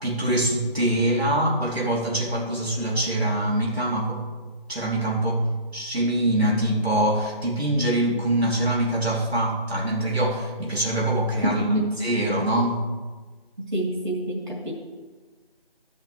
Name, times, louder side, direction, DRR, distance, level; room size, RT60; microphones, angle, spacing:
voice 1, 0.0-4.2 4.7-5.4 5.7-11.6 12.0-12.8, right 1 dB, 90° right, -3 dB, 3.0 m, -24 dB
voice 2, 11.4-11.9 13.7-14.7, right 1 dB, 50° right, -4 dB, 2.9 m, -25 dB
14.0 x 10.5 x 3.2 m, 1.4 s
figure-of-eight pair, 170°, 31 cm